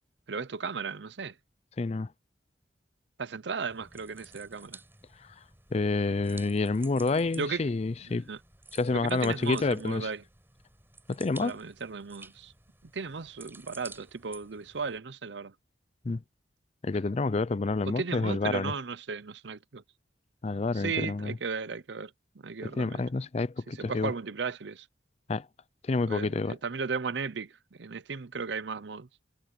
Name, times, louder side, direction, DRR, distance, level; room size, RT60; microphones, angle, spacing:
voice 1, 0.3-1.3 3.2-4.8 7.4-7.6 8.3-8.4 8.9-10.2 11.4-12.5 12.9-15.5 17.8-19.8 20.7-23.0 23.8-24.9 26.1-29.1, right 5 dB, 75° right, 0.7 m, -35 dB
voice 2, 1.8-2.1 5.2-5.3 5.7-8.3 8.7-10.1 11.1-11.6 16.0-16.2 16.8-18.7 20.4-21.4 22.6-24.1 25.3-25.5 25.8-26.6, left 3 dB, 35° left, 0.4 m, -28 dB
sound 1, 3.7-15.0, right 3 dB, 10° right, 5.6 m, -53 dB
head